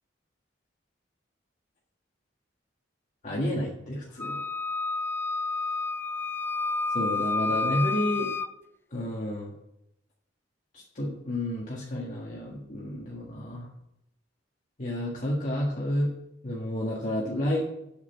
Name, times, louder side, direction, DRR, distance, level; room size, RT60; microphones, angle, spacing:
voice 1, 3.2-4.4 6.9-8.3 8.9-9.5 10.7-13.7 14.8-16.1 16.4-17.6, left 1 dB, 45° left, -4 dB, 1.7 m, -30 dB
Wind instrument woodwind instrument, 4.2-8.5, left 3 dB, 10° left, 0.3 m, -30 dB
8.6 x 6.7 x 7.9 m, 0.84 s
head